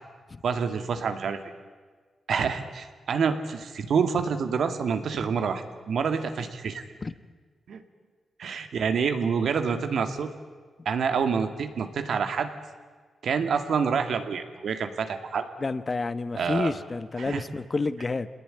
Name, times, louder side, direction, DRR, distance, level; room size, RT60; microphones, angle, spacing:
voice 1, 0.4-1.4 2.3-6.8 7.7-7.8 8.4-10.3 10.9-12.5 13.2-15.5 16.4-16.7 17.2-17.4, right 6 dB, 70° right, 8 dB, 2.3 m, -27 dB
voice 2, 15.6-18.3, left 3 dB, 30° left, 14 dB, 1.1 m, -29 dB
27.5 x 19.5 x 9.9 m, 1.5 s
cardioid pair, 110°, 0 cm